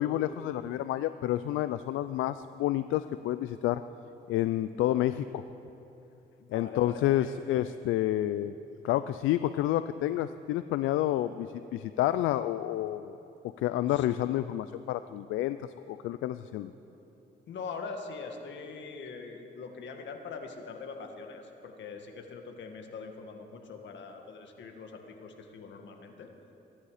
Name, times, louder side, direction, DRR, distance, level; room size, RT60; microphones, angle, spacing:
voice 1, 0.0-3.8 4.3-5.4 6.5-8.5 8.8-13.2 13.6-15.6 15.9-16.7, left 13 dB, 85° left, 13 dB, 0.4 m, -29 dB
voice 2, 6.4-7.3 13.9-14.2 17.5-26.3, left 4 dB, 65° left, 4 dB, 1.8 m, -43 dB
24.0 x 11.0 x 5.0 m, 2.9 s
cardioid pair, 90°, 20 cm